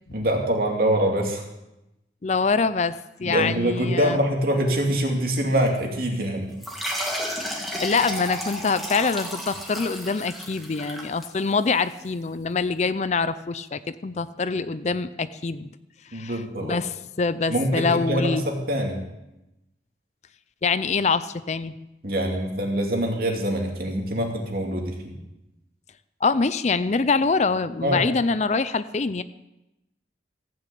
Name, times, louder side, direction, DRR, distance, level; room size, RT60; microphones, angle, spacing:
voice 1, 0.1-1.4 3.2-6.5 16.1-16.8 17.5-19.0 22.0-25.2 27.8-28.1, right 1 dB, 55° right, 1 dB, 2.5 m, -24 dB
voice 2, 2.2-2.9 3.2-4.2 7.8-15.7 16.1-18.5 20.6-21.7 26.2-29.2, left 4 dB, 40° left, 14 dB, 0.4 m, -25 dB
sound 1, 6.6-11.8, equal, ahead, 2.0 m, -32 dB
15.5 x 6.6 x 8.4 m, 0.92 s
head